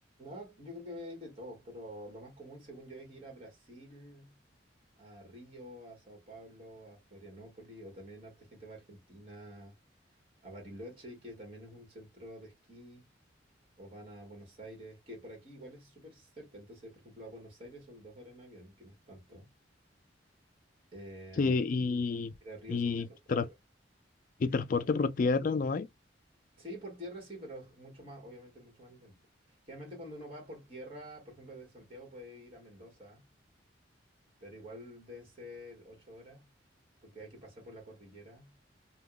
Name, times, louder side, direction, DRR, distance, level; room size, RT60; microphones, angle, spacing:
voice 1, 0.2-4.4 5.0-9.7 10.4-13.1 13.8-19.5 20.9-21.5 22.4-23.4 26.6-29.2 29.5-33.3 34.4-36.5 37.0-38.6, equal, 30° right, 1.4 m, -48 dB
voice 2, 21.4-22.3 22.7-23.5 24.4-25.9, left 4 dB, 45° left, 0.3 m, -29 dB
3.5 x 2.3 x 2.2 m
head